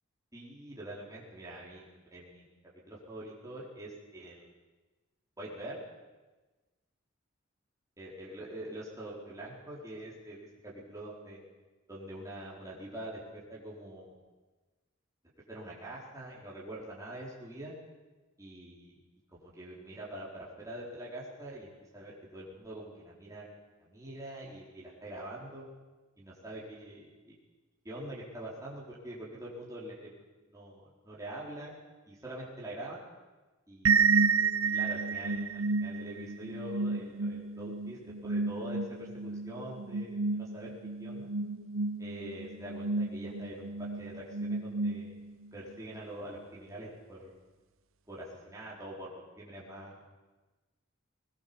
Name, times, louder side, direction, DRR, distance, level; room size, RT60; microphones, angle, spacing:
voice 1, 0.3-2.4 2.9-4.5 5.4-5.8 8.0-11.4 11.9-14.1 15.5-17.7 18.4-19.0 19.3-23.5 23.8-25.7 26.2-27.3 27.8-30.2 30.5-31.7 32.1-33.0 33.7-34.1 34.6-41.3 42.0-45.1 45.5-47.4 48.1-50.0, right 1 dB, 15° right, -5 dB, 4.7 m, -44 dB
sound 1, 33.8-45.5, right 4 dB, 80° right, 1.0 m, -31 dB
22.0 x 20.0 x 7.2 m, 1.2 s
head